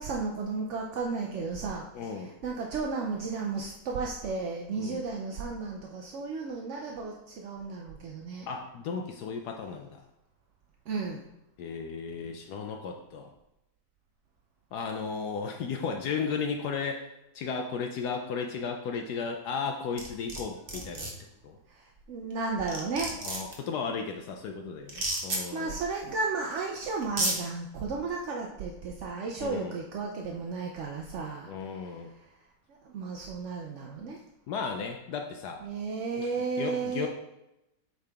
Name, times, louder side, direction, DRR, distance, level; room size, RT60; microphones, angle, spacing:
voice 1, 0.0-8.5 10.9-11.2 20.7-20.9 21.7-23.2 25.5-32.0 32.8-34.2 35.6-37.1, right 4 dB, 65° right, 0 dB, 0.7 m, -34 dB
voice 2, 1.9-2.3 4.8-5.0 8.5-10.0 11.6-13.3 14.7-17.1 17.3-21.1 21.4-21.6 23.2-25.7 29.4-29.7 31.5-32.1 34.5-35.6 36.2-36.3 36.6-37.1, left 5 dB, 75° left, 4 dB, 1.1 m, -34 dB
sound 1, 20.0-20.4 20.7-21.1 22.3-22.4 22.7-23.5 24.9-25.4 26.5-26.6 27.0-27.3, right 2 dB, 35° right, 1.1 m, -30 dB
8.2 x 3.9 x 3.5 m, 0.91 s
omnidirectional pair, 1.9 m